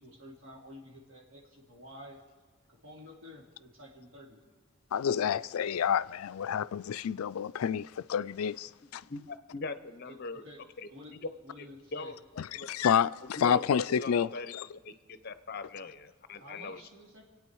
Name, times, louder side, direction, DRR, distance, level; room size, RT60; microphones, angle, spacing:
voice 1, 0.0-2.2 2.7-4.4 10.0-10.6 10.9-11.2 11.4-12.1 16.3-17.2, left 1 dB, 70° right, 2.7 m, -50 dB
voice 2, 4.9-9.0 12.7-14.7, left 8 dB, 85° left, 0.4 m, -29 dB
voice 3, 9.1-10.4 10.8-11.3 11.6-12.2 12.5-12.7 13.2-14.5 14.8-16.8, left 3 dB, 45° left, 0.7 m, -41 dB
26.0 x 8.9 x 4.7 m
head